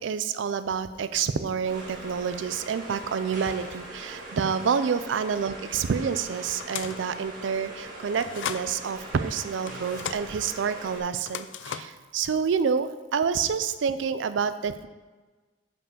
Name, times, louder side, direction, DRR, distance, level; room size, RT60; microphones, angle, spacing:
voice 1, 0.0-14.9, right 6 dB, 80° right, 12 dB, 0.4 m, -28 dB
sound 1, 1.6-11.0, right 1 dB, 45° right, 1.9 m, -41 dB
sound 2, 6.6-7.1 8.1-8.7 9.7-10.2 11.2-12.0, left 8 dB, 80° left, 0.4 m, -35 dB
5.5 x 5.4 x 6.7 m, 1.3 s
head